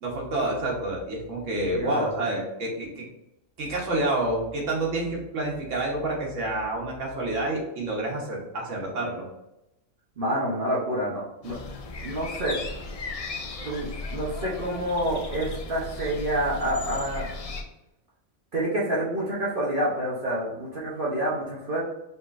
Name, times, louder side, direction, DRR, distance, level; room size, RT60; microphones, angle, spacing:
voice 1, 0.0-3.0 3.6-9.3, right 2 dB, 80° right, -2 dB, 1.5 m, -28 dB
voice 2, 1.7-2.1 10.2-11.5 12.0-12.5 13.6-17.3 18.5-21.8, right 1 dB, 50° right, -7 dB, 1.0 m, -28 dB
sound 1, 11.4-17.6, left 3 dB, 65° left, 0.3 m, -36 dB
5.2 x 3.1 x 2.5 m, 0.88 s
omnidirectional pair, 1.3 m